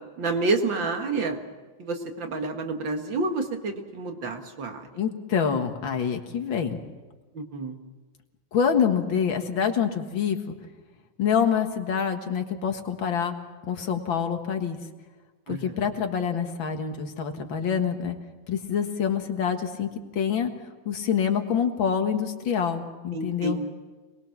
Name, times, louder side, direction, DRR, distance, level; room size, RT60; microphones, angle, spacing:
voice 1, 0.2-1.4 1.8-4.9 7.3-7.8 15.5-15.7 23.1-23.7, right 3 dB, 70° right, 4 dB, 2.5 m, -29 dB
voice 2, 5.0-6.8 8.5-10.5 11.2-13.4 13.7-14.8 15.5-18.2 18.5-19.9 20.1-20.5 20.9-23.6, left 7 dB, 75° left, 5 dB, 2.4 m, -26 dB
26.5 x 20.5 x 6.0 m, 1.3 s
omnidirectional pair, 2.1 m